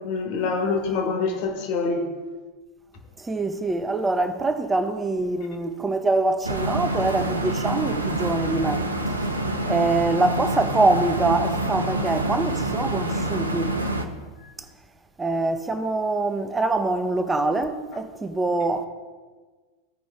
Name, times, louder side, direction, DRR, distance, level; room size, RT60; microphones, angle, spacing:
voice 1, 0.0-2.1, left 4 dB, 45° left, 1.5 m, -25 dB
voice 2, 3.2-9.1 9.7-13.8 14.6-14.7 15.2-18.9, right 2 dB, 10° right, 0.7 m, -24 dB
sound 1, 6.4-14.1, right 1 dB, 85° right, 0.8 m, -27 dB
15.0 x 5.0 x 3.6 m
figure-of-eight pair, 90°, 0 cm